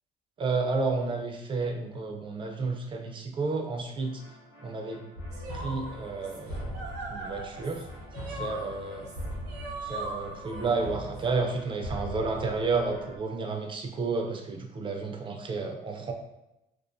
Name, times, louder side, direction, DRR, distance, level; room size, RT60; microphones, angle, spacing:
voice 1, 0.4-4.2 4.6-5.0 5.5-6.8 7.1-7.9 8.3-9.1 9.8-16.1, right 4 dB, 30° right, 3 dB, 0.4 m, -31 dB
sound 1, 4.0-13.2, equal, 90° left, 0.9 m, -41 dB
sound 2, 5.3-11.2, right 2 dB, 80° right, 0.6 m, -40 dB
2.4 x 2.2 x 2.5 m, 0.90 s
cardioid pair, 110°, 17 cm